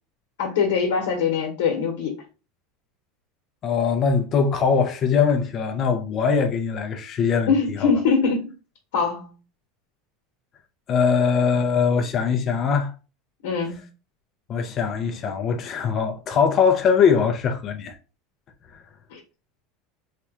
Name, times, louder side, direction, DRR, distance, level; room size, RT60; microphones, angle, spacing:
voice 1, 0.4-2.1 7.5-8.5 8.9-9.3 13.4-13.9 19.1-19.2, left 5 dB, 85° left, 1.0 m, -22 dB
voice 2, 3.6-7.9 10.9-12.9 14.5-18.0, left 6 dB, 35° left, 0.5 m, -21 dB
3.2 x 2.3 x 2.9 m
supercardioid pair, 145°, 0 cm